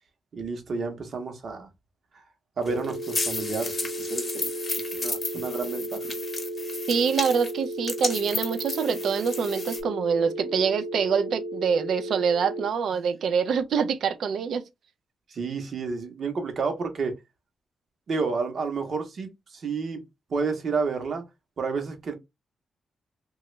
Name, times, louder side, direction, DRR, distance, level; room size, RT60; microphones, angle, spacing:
voice 1, 0.3-1.7 2.6-6.1 15.3-17.1 18.1-20.0 20.3-21.2 21.6-22.1, right 4 dB, 50° right, 0.8 m, -30 dB
sound 1, 2.7-9.8, left 3 dB, 30° left, 0.8 m, -33 dB
sound 2, 2.7-12.7, right 1 dB, 10° right, 0.4 m, -34 dB
voice 2, 6.9-14.6, right 6 dB, 70° right, 0.4 m, -25 dB
2.9 x 2.3 x 3.0 m
wide cardioid pair, 135°, 0 cm